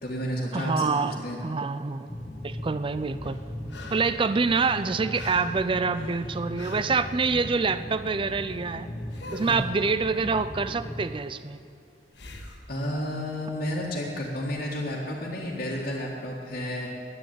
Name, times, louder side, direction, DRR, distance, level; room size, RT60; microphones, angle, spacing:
voice 1, 0.0-1.4 9.4-9.6 12.7-16.9, equal, 50° left, -6 dB, 1.9 m, -31 dB
voice 2, 0.5-2.1 2.4-3.4 3.9-8.9 9.3-11.6, right 4 dB, 30° right, 13 dB, 0.4 m, -26 dB
sound 1, 2.1-11.1, left 1 dB, 20° left, 0.9 m, -38 dB
sound 2, 3.2-4.2 4.5-7.0 9.1-9.7 12.1-12.6 15.6-15.7, left 3 dB, 75° left, 1.5 m, -44 dB
10.5 x 9.4 x 9.2 m, 2.5 s
head